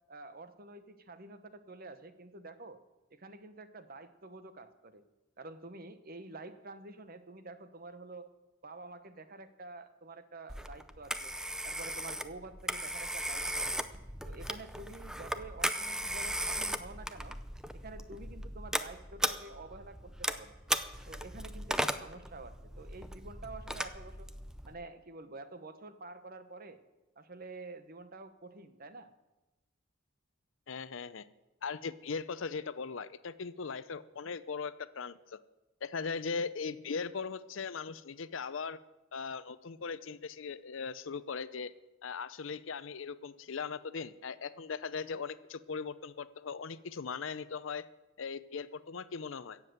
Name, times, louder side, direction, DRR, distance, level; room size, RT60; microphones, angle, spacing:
voice 1, 0.1-2.8 3.1-5.0 5.4-8.3 8.6-11.3 11.6-13.9 14.2-17.4 17.7-20.6 21.1-24.3 24.6-26.8 27.2-29.1, right 2 dB, 45° right, 10 dB, 1.0 m, -48 dB
Telephone, 10.5-24.7, right 1 dB, 5° right, 0.5 m, -37 dB
voice 2, 30.7-31.3 31.6-35.4 35.8-38.8 39.1-41.7 42.0-47.8 48.2-49.6, left 5 dB, 65° left, 15 dB, 0.6 m, -39 dB
16.5 x 7.5 x 7.9 m, 1.0 s
head